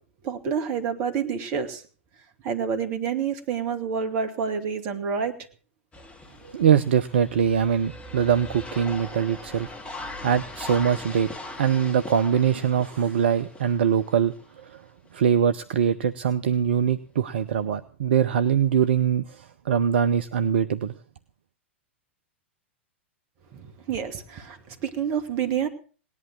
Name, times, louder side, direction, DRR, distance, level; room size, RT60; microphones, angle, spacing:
voice 1, 0.2-1.8 2.4-5.3 23.5-25.7, right 7 dB, 40° right, 7 dB, 2.4 m, -28 dB
sound 1, 5.9-14.5 15.1-15.2 17.5-17.6, left 2 dB, 15° left, 2.5 m, -40 dB
voice 2, 6.4-9.7 10.2-11.3 11.6-14.8 15.1-20.9, right 8 dB, 60° right, 11 dB, 0.8 m, -23 dB
18.5 x 11.0 x 6.2 m, 0.41 s
figure-of-eight pair, 95°, 7 cm